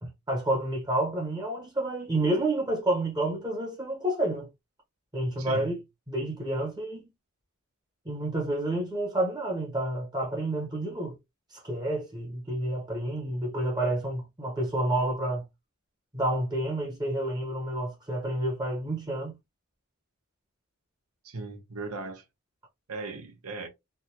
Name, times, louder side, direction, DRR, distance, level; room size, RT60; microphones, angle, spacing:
voice 1, 0.0-4.5 5.1-5.8 6.1-7.1 8.0-11.1 11.6-15.4 16.1-19.4, right 1 dB, 20° right, 1.0 m, -29 dB
voice 2, 5.4-5.7 21.2-22.2 22.9-23.7, right 3 dB, 85° right, 0.9 m, -37 dB
3.4 x 2.2 x 2.8 m
head